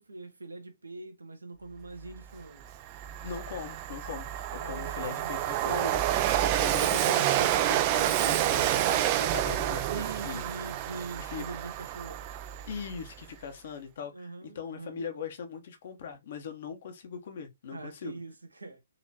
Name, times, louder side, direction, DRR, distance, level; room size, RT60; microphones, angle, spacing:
voice 1, 0.0-2.7 4.6-5.3 9.9-12.3 14.1-15.0 17.7-18.8, right 3 dB, 70° right, 1.0 m, -43 dB
Train, 2.2-2.3 2.6-13.1, right 12 dB, 30° right, 0.4 m, -29 dB
voice 2, 3.2-10.4 11.3-11.4 12.7-18.2, left 6 dB, 45° left, 1.0 m, -40 dB
4.2 x 3.0 x 2.8 m
figure-of-eight pair, 125°, 0 cm